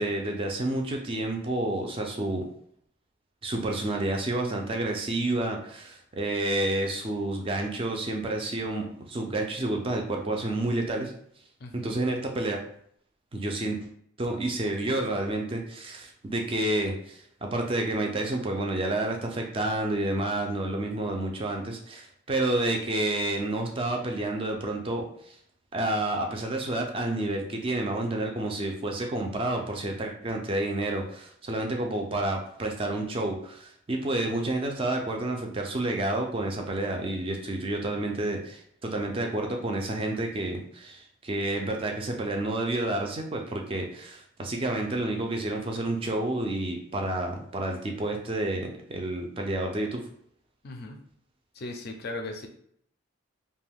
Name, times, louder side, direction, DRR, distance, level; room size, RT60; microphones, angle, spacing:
voice 1, 0.0-2.4 3.4-11.1 11.8-12.6 13.3-13.8 14.2-25.4 25.7-50.0, right 2 dB, 25° right, 2 dB, 0.3 m, -29 dB
voice 2, 11.6-12.0 50.6-51.0 51.5-52.5, left 2 dB, 45° left, 4 dB, 0.4 m, -37 dB
2.5 x 2.2 x 3.4 m, 0.67 s
head